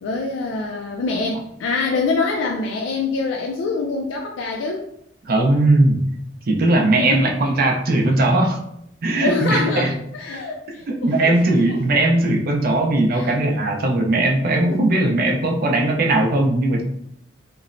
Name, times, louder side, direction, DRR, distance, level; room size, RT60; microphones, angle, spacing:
voice 1, 0.0-4.8 7.0-7.2 9.2-12.0 13.1-13.3, left 3 dB, 80° left, 0 dB, 0.3 m, -25 dB
voice 2, 5.3-6.1 6.5-8.6 9.0-9.9 10.9-16.8, right 2 dB, 55° right, 2 dB, 0.5 m, -18 dB
3.0 x 2.0 x 2.4 m, 0.75 s
head